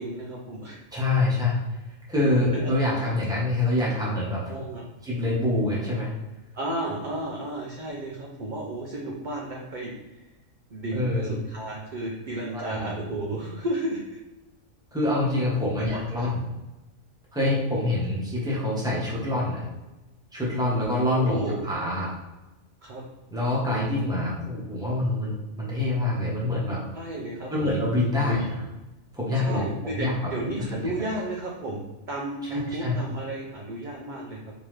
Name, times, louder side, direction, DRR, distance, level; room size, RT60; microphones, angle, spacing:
voice 1, 0.0-0.8 2.5-2.7 3.0-3.1 4.5-4.8 6.5-9.9 10.7-14.0 15.6-16.3 21.2-21.7 22.8-23.0 26.9-27.7 28.2-28.5 29.3-34.5, right 1 dB, 50° right, -3 dB, 0.6 m, -33 dB
voice 2, 0.9-1.6 2.1-4.6 5.0-6.1 10.9-11.4 12.5-12.9 14.9-16.4 17.3-19.7 20.3-22.1 23.3-26.8 27.5-28.6 29.1-30.1 30.7-30.9 32.4-33.0, left 2 dB, 5° right, -6 dB, 1.0 m, -26 dB
3.7 x 3.0 x 3.2 m, 1.0 s
omnidirectional pair, 1.4 m